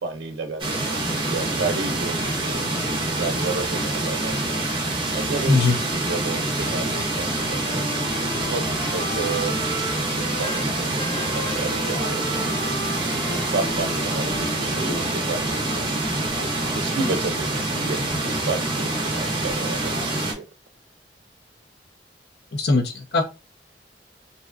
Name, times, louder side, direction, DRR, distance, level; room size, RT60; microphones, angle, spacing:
voice 1, 0.0-4.5 5.1-7.8 8.2-9.6 10.1-12.3 13.1-15.9 16.7-20.4, right 3 dB, 80° right, 5 dB, 0.5 m, -32 dB
sound 1, 0.6-20.3, right 2 dB, 30° right, 0.6 m, -26 dB
voice 2, 5.4-5.8 22.5-23.2, left 3 dB, 65° left, 5 dB, 0.6 m, -20 dB
Wind instrument woodwind instrument, 7.1-10.7 11.0-15.2, left 1 dB, 20° left, 0.8 m, -35 dB
2.7 x 2.2 x 2.4 m, 0.28 s
head